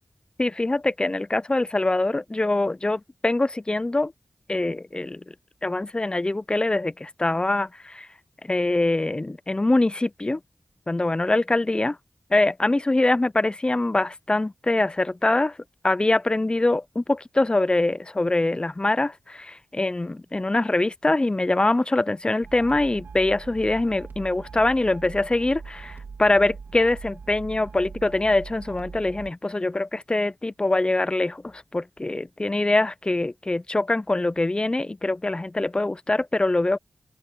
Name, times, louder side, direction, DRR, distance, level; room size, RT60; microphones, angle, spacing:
voice 1, 0.4-4.1 4.5-5.2 5.6-8.1 8.4-10.4 10.9-12.0 12.3-15.6 15.8-36.8, left 2 dB, 30° left, 0.7 m, -24 dB
sound 1, 22.4-29.3, right 5 dB, 90° right, 2.0 m, -41 dB
open air
cardioid pair, 45°, 3 cm